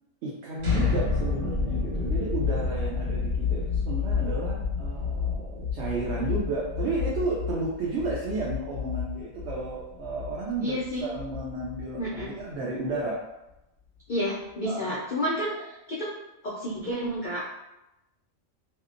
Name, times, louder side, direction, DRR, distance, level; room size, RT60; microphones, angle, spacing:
voice 1, 0.2-13.2 14.6-15.0, right 3 dB, 65° right, -5 dB, 0.7 m, -32 dB
sound 1, 0.6-12.4, left 5 dB, 80° right, 1.3 m, -30 dB
voice 2, 10.6-11.0 12.0-12.3 14.1-16.1 16.4-17.5, equal, 65° left, -6 dB, 0.4 m, -30 dB
2.7 x 2.1 x 2.5 m, 0.92 s
omnidirectional pair, 1.4 m